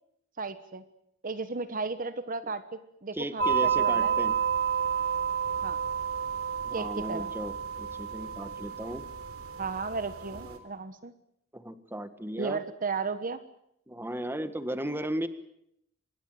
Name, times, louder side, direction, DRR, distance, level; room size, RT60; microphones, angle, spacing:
voice 1, 0.4-0.8 1.2-4.2 5.6-5.8 6.7-7.3 9.6-11.1 12.4-13.4, right 4 dB, 40° right, 12 dB, 1.3 m, -34 dB
voice 2, 3.1-4.4 6.6-9.0 10.4-10.6 11.5-12.6 13.9-15.3, right 1 dB, 10° right, 11 dB, 1.6 m, -36 dB
sound 1, 3.4-10.6, right 7 dB, 90° right, 4.0 m, -30 dB
26.5 x 21.0 x 7.9 m, 0.75 s
head